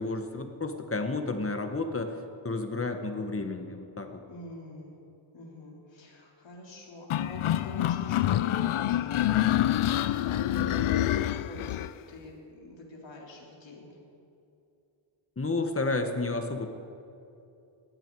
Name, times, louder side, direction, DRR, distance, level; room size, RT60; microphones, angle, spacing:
voice 1, 0.0-4.2 10.6-10.7 15.4-16.7, left 3 dB, 30° left, 6 dB, 1.4 m, -31 dB
voice 2, 4.3-4.9 5.3-11.8 12.1-14.0, left 2 dB, 65° left, -2 dB, 3.6 m, -45 dB
sound 1, 7.1-11.9, left 12 dB, 85° left, 0.6 m, -26 dB
19.0 x 14.0 x 4.8 m, 2.7 s
wide cardioid pair, 110°, 48 cm